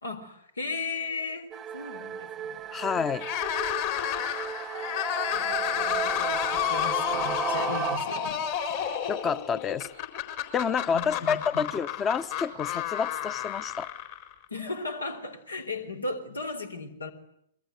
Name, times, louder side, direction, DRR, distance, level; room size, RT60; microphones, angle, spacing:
voice 1, 0.0-2.8 5.3-8.9 10.9-11.7 14.5-17.1, left 3 dB, 75° left, 4.2 m, -37 dB
sound 1, 1.5-8.0, right 9 dB, 15° right, 1.1 m, -34 dB
voice 2, 2.7-3.3 9.1-9.9 10.5-13.9, left 6 dB, 20° left, 1.2 m, -29 dB
sound 2, 3.2-14.5, left 10 dB, 40° left, 4.2 m, -31 dB
27.0 x 23.0 x 9.5 m
figure-of-eight pair, 110°, 0 cm